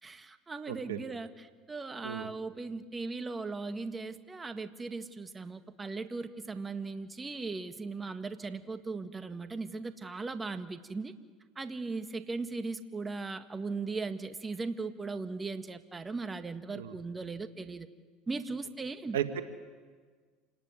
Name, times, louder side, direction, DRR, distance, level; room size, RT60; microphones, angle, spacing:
voice 1, 0.0-11.1 11.6-17.9 18.3-19.2, right 3 dB, 20° right, 8 dB, 1.8 m, -38 dB
voice 2, 0.7-1.0 2.0-2.3 16.7-17.0 19.1-19.4, right 10 dB, 90° right, 8 dB, 1.6 m, -34 dB
27.5 x 19.0 x 9.7 m, 1.5 s
hypercardioid pair, 85°, 0 cm